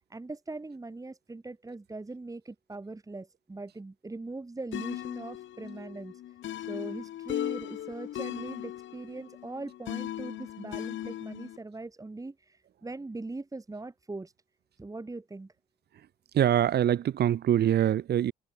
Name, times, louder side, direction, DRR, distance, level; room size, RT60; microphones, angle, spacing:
voice 1, 0.1-6.2 6.6-14.3 14.8-15.5, right 2 dB, 15° right, 2.0 m, -41 dB
sound 1, 4.7-11.6, left 12 dB, 70° left, 1.4 m, -38 dB
voice 2, 16.3-18.3, right 10 dB, 55° right, 0.7 m, -24 dB
cardioid pair, 90°, 20 cm